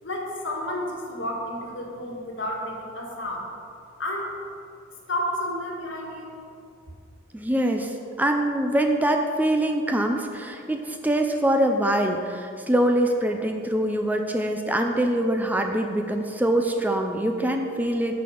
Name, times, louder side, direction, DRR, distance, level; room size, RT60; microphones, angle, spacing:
voice 1, 0.0-3.5 4.0-4.3 5.1-6.4, left 1 dB, 65° left, -1 dB, 1.7 m, -31 dB
voice 2, 7.3-18.2, right 1 dB, 10° right, 4 dB, 0.4 m, -24 dB
6.5 x 6.1 x 6.3 m, 2.4 s
head